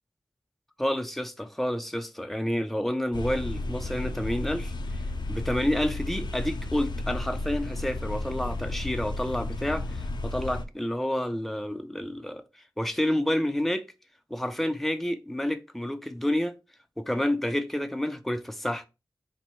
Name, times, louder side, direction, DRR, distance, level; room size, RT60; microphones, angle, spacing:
voice 1, 0.8-5.0 5.3-12.4 12.8-13.8 14.3-16.6 17.0-18.9, left 1 dB, 5° left, 0.5 m, -29 dB
sound 1, 3.1-10.6, left 2 dB, 90° left, 0.5 m, -33 dB
4.4 x 2.6 x 4.3 m
wide cardioid pair, 80°, 7 cm